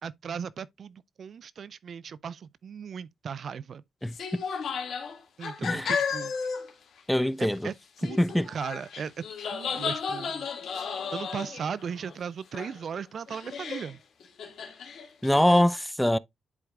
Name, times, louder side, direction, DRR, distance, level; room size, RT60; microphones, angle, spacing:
voice 1, 0.0-3.8 5.4-6.3 7.4-8.2 8.5-10.5 11.1-14.0, right 7 dB, 60° right, 0.4 m, -37 dB
voice 2, 4.0-4.4 5.6-5.9 7.1-7.7 8.2-8.5 15.2-16.2, left 1 dB, 5° left, 0.4 m, -24 dB
sound 1, 4.1-6.7 7.0-7.1 8.0-12.2 12.5-13.0 13.3-13.9 14.2-15.6, left 6 dB, 70° left, 2.1 m, -34 dB
10.5 x 4.6 x 2.4 m
supercardioid pair, 65°, 0 cm